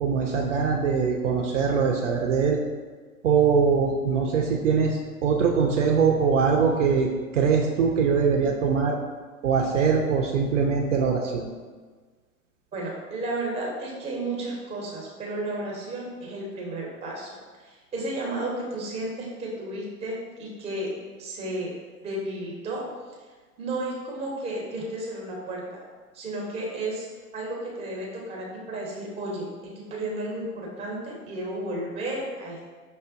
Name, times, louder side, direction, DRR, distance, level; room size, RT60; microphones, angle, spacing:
voice 1, 0.0-2.6 3.2-9.0 9.4-11.5, right 5 dB, 55° right, 0 dB, 0.5 m, -22 dB
voice 2, 12.7-17.4 17.6-20.9 21.2-21.7 22.0-22.8 23.6-25.8 26.1-27.1 27.3-32.7, right 1 dB, 15° right, -2 dB, 0.7 m, -33 dB
5.6 x 2.1 x 2.5 m, 1.4 s
figure-of-eight pair, 95°, 46 cm